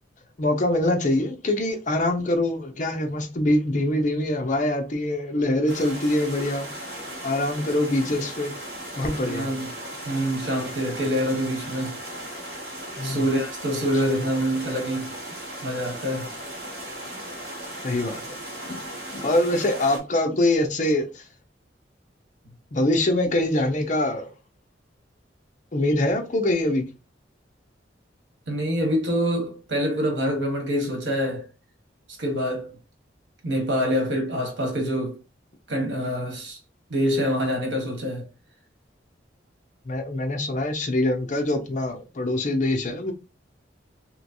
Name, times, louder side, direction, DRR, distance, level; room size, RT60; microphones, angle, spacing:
voice 1, 0.4-6.9 7.2-8.5 9.0-9.5 13.0-13.2 17.8-18.2 18.7-18.8 19.1-21.2 22.7-24.3 25.7-26.9 39.9-43.1, left 1 dB, 40° left, 0.7 m, -24 dB
sound 1, 5.7-20.0, right 1 dB, 60° right, 1.7 m, -37 dB
voice 2, 9.2-9.7 10.0-11.9 13.0-15.1 15.6-16.3 28.5-31.5 32.2-32.7 33.4-35.2 35.7-36.6 36.9-38.2, equal, 85° right, 1.3 m, -26 dB
3.1 x 3.0 x 2.6 m
head